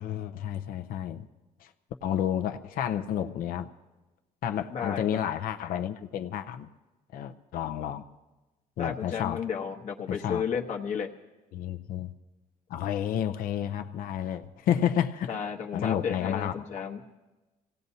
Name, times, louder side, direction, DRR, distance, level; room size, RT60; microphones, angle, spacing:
voice 1, 0.0-1.3 1.6-1.7 2.0-3.7 4.4-6.7 7.1-8.0 8.8-9.4 10.1-10.5 11.5-12.1 12.7-15.4 15.7-16.5, left 10 dB, 75° left, 8 dB, 0.6 m, -30 dB
voice 2, 4.7-5.0 8.8-11.1 15.3-17.0, left 7 dB, 55° left, 2 dB, 1.0 m, -32 dB
26.5 x 17.0 x 2.8 m, 1.1 s
cardioid pair, 165°, 15 cm